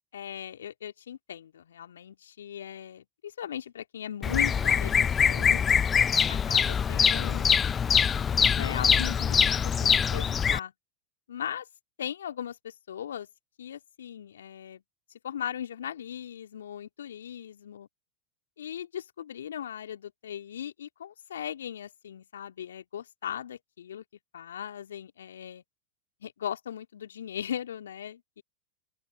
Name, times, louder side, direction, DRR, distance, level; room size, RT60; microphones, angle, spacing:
voice 1, 0.1-5.6 6.3-7.6 8.0-10.7 11.3-11.7 12.0-13.3 13.6-14.8 15.2-17.9 18.6-24.0 24.3-25.6 26.2-28.4, left 9 dB, 70° left, 2.6 m, -38 dB
Bird vocalization bird call bird song, 4.2-10.6, left 7 dB, 25° left, 0.7 m, -24 dB
open air
figure-of-eight pair, 90°, 0 cm